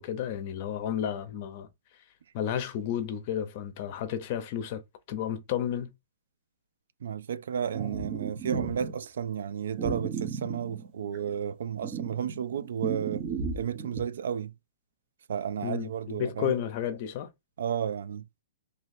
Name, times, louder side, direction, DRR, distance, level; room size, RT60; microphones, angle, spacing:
voice 1, 0.0-1.7 2.3-4.8 5.1-5.9 15.6-17.3, left 9 dB, 40° left, 0.8 m, -32 dB
voice 2, 7.0-13.3 13.5-14.5 15.3-16.6 17.6-18.3, right 8 dB, 80° right, 0.3 m, -32 dB
sound 1, 7.7-8.9 9.8-11.3 11.8-14.0, right 5 dB, 30° right, 0.9 m, -34 dB
3.1 x 2.8 x 4.1 m
hypercardioid pair, 155°, 0 cm